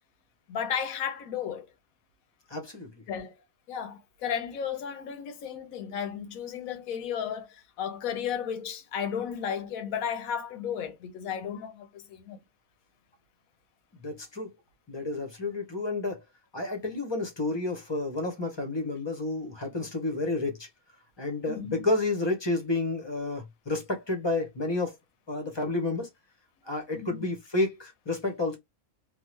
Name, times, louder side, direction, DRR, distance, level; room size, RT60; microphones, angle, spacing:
voice 1, 0.5-1.7 3.1-3.3 3.7-12.4 21.5-21.8 26.9-27.3, left 8 dB, 85° left, 1.1 m, -34 dB
voice 2, 2.5-2.9 14.0-14.5 14.9-16.2 16.5-20.7 21.2-25.0 25.3-26.1 26.6-28.6, left 2 dB, 25° left, 0.6 m, -30 dB
3.0 x 2.1 x 3.0 m
omnidirectional pair, 1.4 m